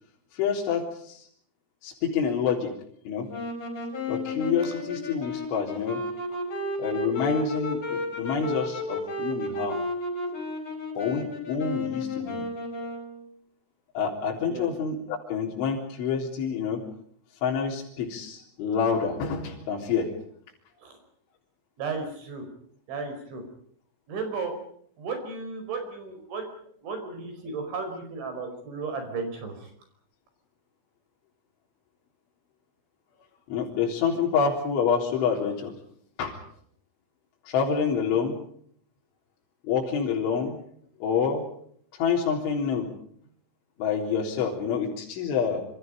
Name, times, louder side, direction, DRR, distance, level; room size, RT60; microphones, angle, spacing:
voice 1, 0.3-1.3 1.8-2.7 3.1-3.3 4.1-6.0 6.8-9.8 11.0-12.4 14.0-16.8 17.4-20.1 33.5-35.7 36.2-36.4 37.5-38.4 39.6-40.6 41.0-41.4 41.9-42.9 43.8-45.6, left 6 dB, 65° left, -2 dB, 6.0 m, -27 dB
sound 1, 3.3-13.3, left 2 dB, 40° left, 7.7 m, -33 dB
voice 2, 21.8-22.4 22.9-23.4 24.1-24.5 25.0-26.5 26.8-29.7, right 4 dB, 60° right, 6 dB, 7.3 m, -34 dB
27.5 x 27.0 x 5.2 m, 0.62 s
omnidirectional pair, 6.0 m